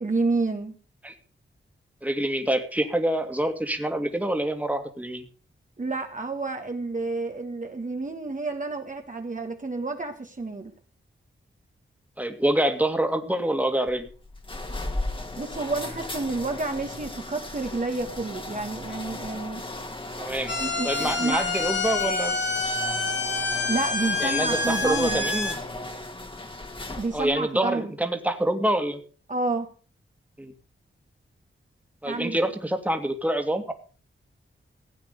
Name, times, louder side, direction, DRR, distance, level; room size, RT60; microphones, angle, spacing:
voice 1, 0.0-0.8 5.8-10.7 15.4-19.6 20.2-20.3 20.6-21.5 23.7-25.3 27.0-28.0 29.3-29.7 32.0-32.4, right 3 dB, 40° right, 4 dB, 1.7 m, -29 dB
voice 2, 2.0-5.2 12.2-14.1 20.2-20.5 20.8-22.4 24.2-25.5 27.1-29.0 30.4-30.5 32.0-33.7, right 1 dB, 5° right, 7 dB, 2.2 m, -26 dB
sound 1, 13.9-27.4, left 2 dB, 25° left, 2.1 m, -36 dB
sound 2, 20.5-25.5, left 3 dB, 60° left, 3.0 m, -27 dB
16.5 x 8.8 x 6.7 m, 0.40 s
wide cardioid pair, 90°, 21 cm